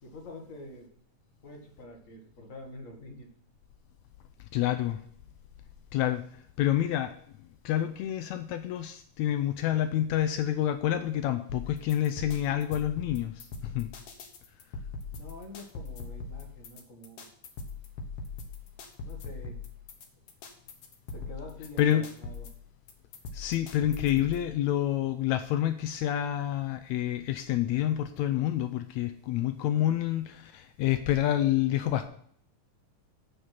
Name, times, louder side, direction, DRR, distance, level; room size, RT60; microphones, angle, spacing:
voice 1, 0.0-0.9 1.4-3.3 15.1-17.3 19.0-19.6 21.1-22.5, left 1 dB, 35° left, 2 dB, 1.4 m, -46 dB
voice 2, 4.5-5.0 5.9-6.2 6.6-7.1 7.6-13.9 21.8-22.0 23.3-32.1, left 12 dB, 90° left, 8 dB, 1.6 m, -28 dB
sound 1, 11.5-24.5, left 4 dB, 55° left, 1.9 m, -41 dB
8.0 x 6.5 x 5.9 m, 0.62 s
omnidirectional pair, 3.8 m